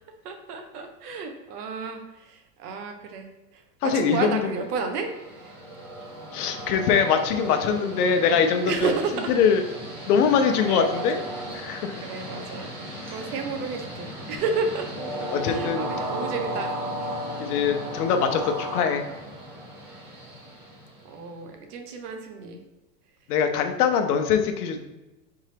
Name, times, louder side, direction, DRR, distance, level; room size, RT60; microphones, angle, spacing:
voice 1, 0.2-3.3 3.5-5.1 5.4-5.5 8.7-9.3 10.7-11.0 12.0-12.7 13.1-14.9 15.4-16.7 21.1-22.6, right 4 dB, 65° right, 5 dB, 0.9 m, -31 dB
voice 2, 3.8-4.4 6.3-8.9 9.3-9.6 10.1-11.2 11.5-11.9 15.3-15.9 17.4-19.1 23.3-24.8, left 6 dB, 65° left, 6 dB, 0.7 m, -22 dB
Train, 4.6-21.4, equal, 20° right, 1.1 m, -35 dB
4.1 x 3.5 x 3.3 m, 1.0 s
supercardioid pair, 150°, 49 cm